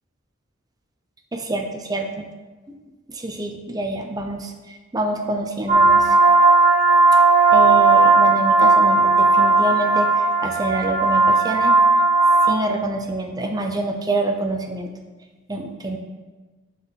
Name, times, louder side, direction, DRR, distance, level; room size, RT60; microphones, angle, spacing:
voice 1, 1.3-2.3 3.1-4.5 4.9-6.2 7.5-11.8 12.5-14.9 15.5-16.0, right 1 dB, 20° right, 4 dB, 0.5 m, -26 dB
sound 1, 5.7-12.5, right 3 dB, 35° right, 1.3 m, -15 dB
12.0 x 4.0 x 4.1 m, 1.3 s
head